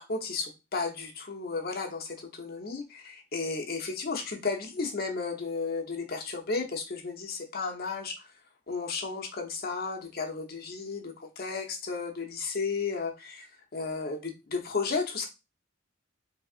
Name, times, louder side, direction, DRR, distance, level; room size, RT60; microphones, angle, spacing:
voice 1, 0.0-8.3 8.7-15.3, left 4 dB, 45° left, 2 dB, 0.7 m, -34 dB
3.9 x 2.7 x 2.4 m, 0.25 s
head